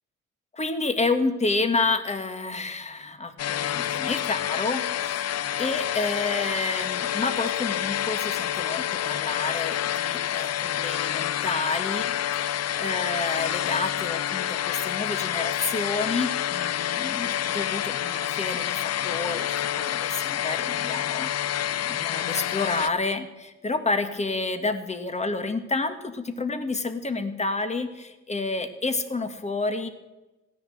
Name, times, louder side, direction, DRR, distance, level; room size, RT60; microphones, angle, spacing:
voice 1, 0.5-29.9, left 3 dB, 20° left, 9 dB, 1.9 m, -30 dB
sound 1, 3.4-22.9, left 11 dB, 55° left, 0.6 m, -28 dB
16.5 x 10.5 x 8.0 m, 1.1 s
cardioid pair, 90°, 30 cm